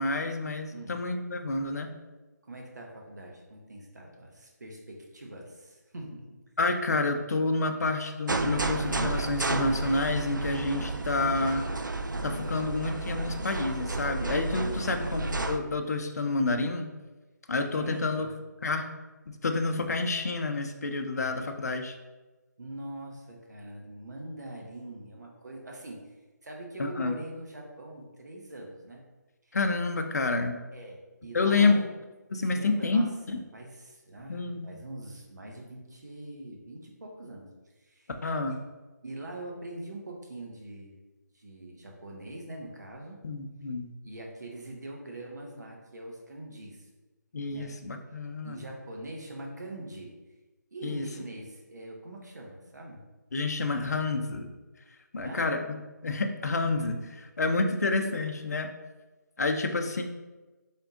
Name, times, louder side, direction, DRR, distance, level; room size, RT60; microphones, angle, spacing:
voice 1, 0.0-1.9 6.6-11.6 12.2-16.9 17.5-18.3 18.6-18.9 19.4-22.0 26.8-27.1 29.5-30.6 31.3-31.8 32.3-33.4 34.3-34.7 38.2-38.6 43.2-43.9 47.3-48.6 50.8-51.1 53.3-54.5 55.1-58.7 59.4-60.0, left 3 dB, 55° left, 6 dB, 0.5 m, -29 dB
voice 2, 2.5-6.4 14.5-14.8 17.7-18.3 22.6-29.0 29.4-29.6 30.7-31.8 32.4-33.1 33.5-37.5 37.8-38.1 38.5-38.6 39.0-40.9 41.3-43.2 44.0-46.9 47.5-47.7 48.4-50.1 50.7-53.0 55.2-55.5, right 1 dB, 65° right, 0 dB, 0.9 m, -43 dB
sound 1, 8.3-15.6, right 2 dB, 85° right, 0.4 m, -31 dB
3.9 x 3.5 x 2.7 m, 1.2 s
figure-of-eight pair, 150°, 10 cm